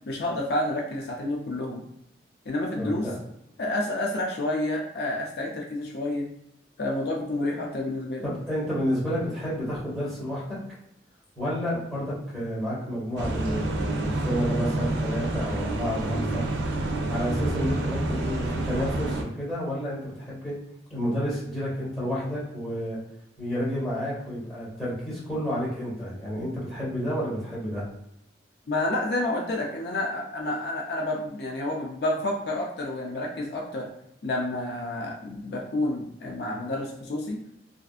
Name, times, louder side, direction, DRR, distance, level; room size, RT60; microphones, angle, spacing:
voice 1, 0.1-1.8 2.5-3.1 3.6-6.2 6.8-8.2 28.7-33.9 34.2-37.4, left 1 dB, 65° left, -1 dB, 0.4 m, -29 dB
voice 2, 2.7-3.2 8.2-10.6 11.4-16.5 17.1-20.6 20.9-23.0 23.4-27.8, equal, ahead, -9 dB, 1.3 m, -30 dB
sound 1, 13.2-19.2, right 2 dB, 85° right, 0.4 m, -28 dB
2.5 x 2.4 x 2.4 m, 0.82 s
head